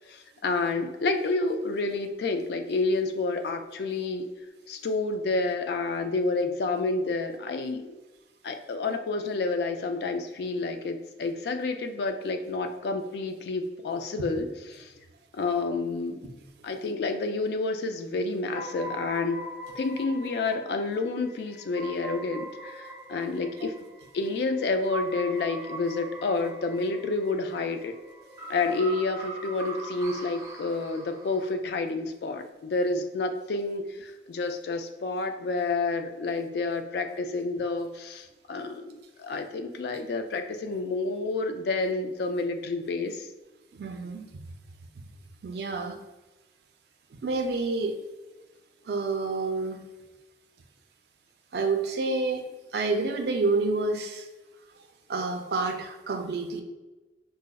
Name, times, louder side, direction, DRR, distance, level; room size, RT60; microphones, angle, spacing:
voice 1, 0.1-4.3 4.7-8.0 8.4-14.5 14.7-14.9 15.3-16.2 16.6-19.4 19.8-23.7 24.1-27.9 28.5-43.3, left 3 dB, 65° left, 7 dB, 0.3 m, -29 dB
sound 1, 18.5-31.6, right 2 dB, 20° right, 0.6 m, -41 dB
voice 2, 43.7-44.2 45.0-45.1 45.4-46.0 47.1-48.0 48.9-49.8 51.5-54.3 55.1-56.6, right 3 dB, 65° right, 5 dB, 0.4 m, -29 dB
4.7 x 2.0 x 2.3 m, 1.1 s
head